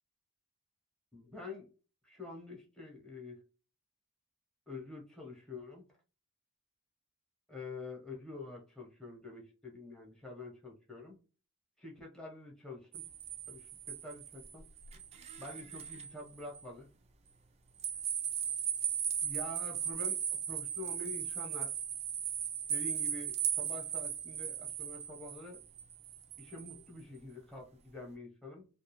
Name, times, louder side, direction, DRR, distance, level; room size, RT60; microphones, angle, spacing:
voice 1, 1.1-1.7 2.0-3.4 4.7-5.9 7.5-11.2 11.8-13.0 13.5-14.6 15.4-16.9 19.2-20.2 20.5-21.7 22.7-25.6 26.4-28.7, left 2 dB, 5° left, -1 dB, 0.9 m, -47 dB
sound 1, 12.9-16.1 16.5-16.6 17.8-26.8, right 9 dB, 30° right, 0.3 m, -37 dB
2.4 x 2.3 x 2.9 m, 0.35 s
head